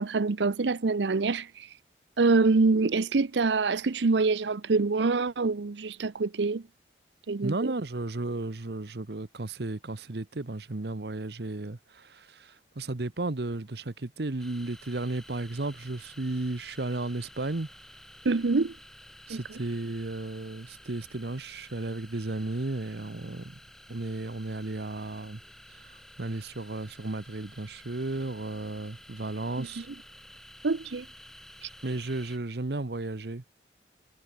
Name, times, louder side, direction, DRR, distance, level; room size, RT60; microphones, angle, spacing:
voice 1, 0.0-1.7 2.2-6.6 7.3-7.7 18.2-18.7 19.3-19.4 29.6-29.7 30.6-31.1 31.6-31.7, right 3 dB, 85° right, 0.7 m, -25 dB
voice 2, 7.4-17.7 19.3-23.6 23.9-25.4 25.7-29.9 31.8-33.4, right 2 dB, 65° right, 1.0 m, -34 dB
sound 1, 14.4-32.4, equal, ahead, 5.7 m, -52 dB
head